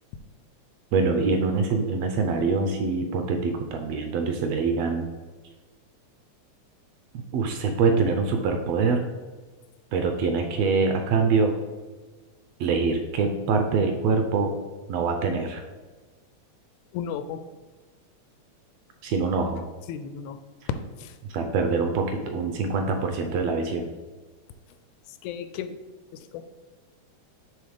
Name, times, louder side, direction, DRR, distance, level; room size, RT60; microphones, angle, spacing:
voice 1, 0.9-5.1 7.1-9.0 9.9-11.5 12.6-14.5 14.9-15.6 19.0-19.6 21.2-23.9, right 4 dB, 75° right, 5 dB, 1.7 m, -24 dB
voice 2, 16.9-17.4 19.9-20.4 21.0-21.2 25.1-25.8 26.1-26.4, left 8 dB, 90° left, 10 dB, 2.1 m, -35 dB
6.8 x 4.6 x 5.0 m, 1.3 s
omnidirectional pair, 3.4 m